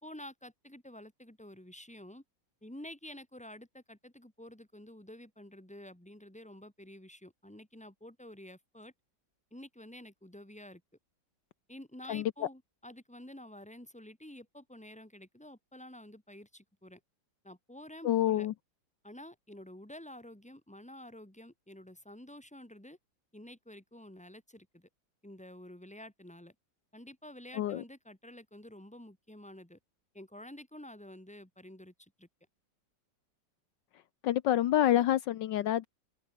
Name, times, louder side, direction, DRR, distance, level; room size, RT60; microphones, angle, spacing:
voice 1, 0.0-2.2 2.6-8.9 9.5-10.8 11.7-17.0 17.4-18.5 19.0-23.0 23.3-24.9 25.2-26.5 26.9-29.8 30.1-32.3, left 1 dB, 5° left, 3.5 m, -50 dB
voice 2, 12.1-12.5 18.0-18.5 27.5-27.8 34.2-35.9, left 12 dB, 75° left, 1.4 m, -27 dB
open air
omnidirectional pair, 2.0 m